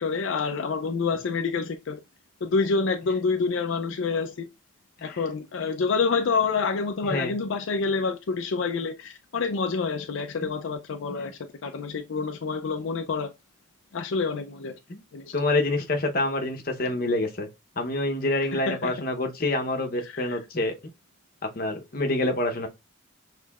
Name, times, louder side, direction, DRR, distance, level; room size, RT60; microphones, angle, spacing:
voice 1, 0.0-2.0 2.4-4.5 5.0-13.3 13.9-14.8 15.1-15.3 18.5-18.9 20.1-20.4, left 4 dB, 75° left, 0.4 m, -27 dB
voice 2, 7.0-7.3 10.4-10.5 11.1-11.3 14.9-15.0 15.3-17.5 17.8-20.7 21.5-22.7, left 2 dB, 45° left, 0.8 m, -27 dB
6.3 x 3.2 x 2.3 m
head